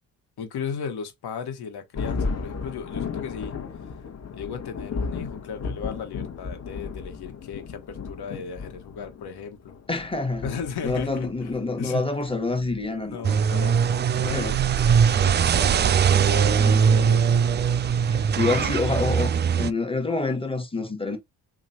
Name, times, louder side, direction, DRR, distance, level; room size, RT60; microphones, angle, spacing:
voice 1, 0.4-3.6 4.3-9.8 10.4-12.0 12.9-17.8 18.5-19.0, left 6 dB, 60° left, 1.3 m, -36 dB
Thunder, 1.9-15.9, left 5 dB, 35° left, 1.3 m, -35 dB
voice 2, 9.9-10.5 10.8-13.2 14.2-14.6 16.1-17.2 18.1-21.2, left 3 dB, 10° left, 1.3 m, -27 dB
sound 1, 13.2-19.7, right 7 dB, 25° right, 0.3 m, -21 dB
2.9 x 2.4 x 4.1 m
supercardioid pair, 65°, 43 cm